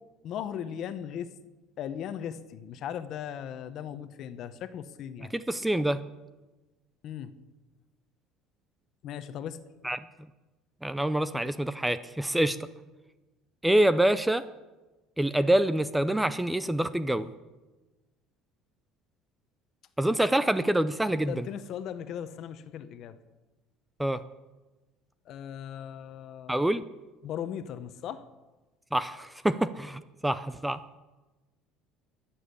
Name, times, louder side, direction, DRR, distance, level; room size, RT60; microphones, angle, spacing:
voice 1, 0.2-1.3 1.8-5.3 7.0-7.3 9.0-9.6 21.3-23.2 25.3-26.6 27.2-28.2, left 9 dB, 50° left, 12 dB, 1.1 m, -38 dB
voice 2, 5.3-6.0 9.8-10.0 10.8-12.6 13.6-14.4 15.2-17.3 20.0-21.5 24.0-24.2 26.5-26.8 28.9-30.8, right 1 dB, 5° right, 13 dB, 0.5 m, -26 dB
22.0 x 7.4 x 8.4 m, 1.2 s
cardioid pair, 140°, 0 cm